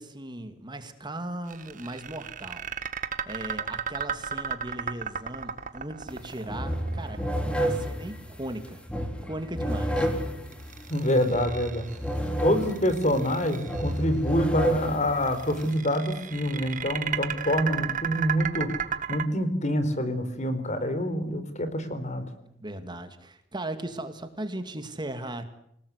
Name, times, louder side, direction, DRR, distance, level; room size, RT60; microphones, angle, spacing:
voice 1, 0.0-2.7 3.3-7.2 7.5-10.1 22.6-25.5, right 1 dB, 25° right, 8 dB, 2.4 m, -37 dB
sound 1, 1.5-7.7 10.5-12.1 12.6-14.0 15.2-19.2, right 7 dB, 45° right, 1.7 m, -34 dB
sound 2, 6.1-6.2 6.5-15.7, right 1 dB, 5° left, 3.9 m, -31 dB
voice 2, 10.9-11.9 12.4-18.7 19.1-22.2, equal, 40° left, 10 dB, 4.4 m, -26 dB
28.5 x 18.5 x 9.8 m, 0.74 s
head